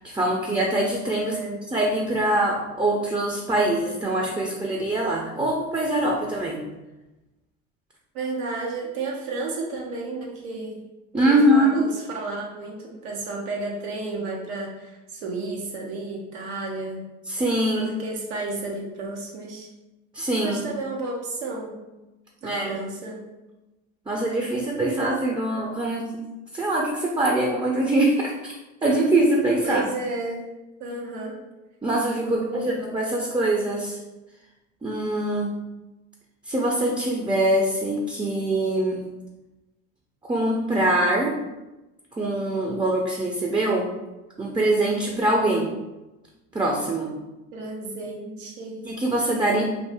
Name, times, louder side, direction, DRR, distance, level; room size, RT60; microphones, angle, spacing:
voice 1, 0.0-1.4 1.7-6.6 11.1-11.8 17.3-17.9 20.1-20.6 22.4-22.7 24.1-26.2 26.5-28.5 28.8-29.8 31.8-34.0 34.8-35.6 36.5-39.0 40.2-41.4 42.2-43.9 44.4-45.7 46.5-47.1 48.8-49.7, right 1 dB, 15° right, -2 dB, 0.5 m, -23 dB
voice 2, 1.2-1.6 8.1-10.8 11.2-17.0 17.7-19.7 20.4-21.8 22.4-23.2 29.6-30.4 30.8-31.4 32.2-32.7 47.5-48.8, right 3 dB, 85° right, -1 dB, 0.8 m, -32 dB
2.7 x 2.6 x 3.4 m, 1.0 s
supercardioid pair, 70°, 34 cm